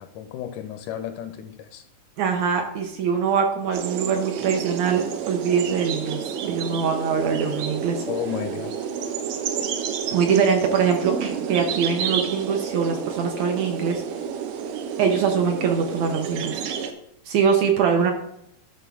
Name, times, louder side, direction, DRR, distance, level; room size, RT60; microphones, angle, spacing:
voice 1, 0.0-1.8 8.0-8.9, left 10 dB, 80° left, 9 dB, 1.9 m, -33 dB
voice 2, 2.2-6.2 6.5-8.0 10.1-14.0 15.0-16.6 17.3-18.1, right 6 dB, 70° right, 3 dB, 1.9 m, -23 dB
sound 1, 3.7-16.9, right 7 dB, 90° right, 2.5 m, -30 dB
11.0 x 3.6 x 6.2 m, 0.77 s
omnidirectional pair, 3.8 m